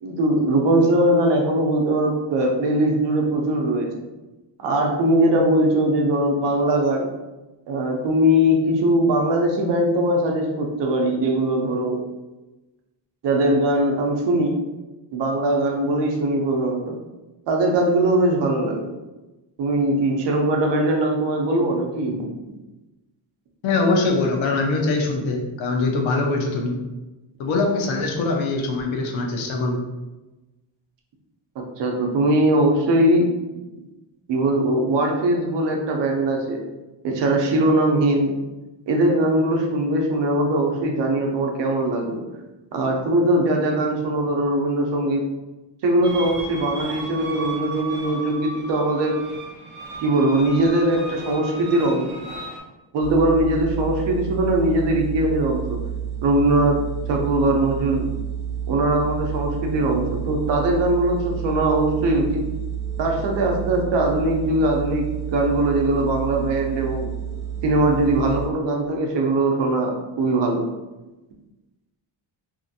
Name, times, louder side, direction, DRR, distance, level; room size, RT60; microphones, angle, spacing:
voice 1, 0.0-4.0 4.6-7.1 7.7-12.0 13.2-14.6 15.1-16.9 17.5-18.9 19.6-22.3 31.6-33.3 34.3-36.6 37.0-38.3 38.9-42.2 42.7-45.2 45.8-49.2 50.0-52.2 52.9-55.8 56.2-56.8 57.1-58.1 58.7-62.4 63.0-67.1 67.6-70.6, right 1 dB, 70° right, 1 dB, 0.7 m, -21 dB
voice 2, 23.6-26.8 27.4-29.8, left 3 dB, 90° left, 1 dB, 0.7 m, -22 dB
sound 1, 46.0-52.6, right 2 dB, 25° right, 0.5 m, -35 dB
sound 2, 53.0-68.5, right 8 dB, 70° left, 1.2 m, -30 dB
2.8 x 2.5 x 2.6 m, 1.1 s
cardioid pair, 160°, 45 cm